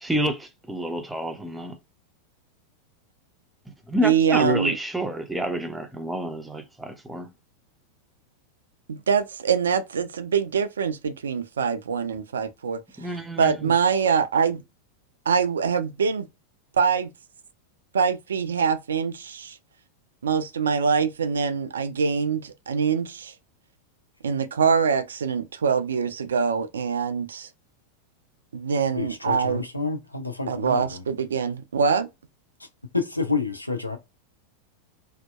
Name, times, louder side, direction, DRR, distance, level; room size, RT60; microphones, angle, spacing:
voice 1, 0.0-1.8 3.7-7.3 13.0-13.7, equal, 5° right, 0.5 m, -29 dB
voice 2, 4.0-4.7 8.9-12.8 13.4-14.6 15.3-16.3 16.8-17.1 17.9-19.6 20.2-23.3 24.2-27.5 28.5-29.6 30.5-32.1, right 6 dB, 65° right, 0.3 m, -24 dB
voice 3, 28.9-31.0 32.6-32.7 32.9-34.0, left 4 dB, 85° left, 0.5 m, -29 dB
2.7 x 2.1 x 2.3 m
figure-of-eight pair, 90°, 0 cm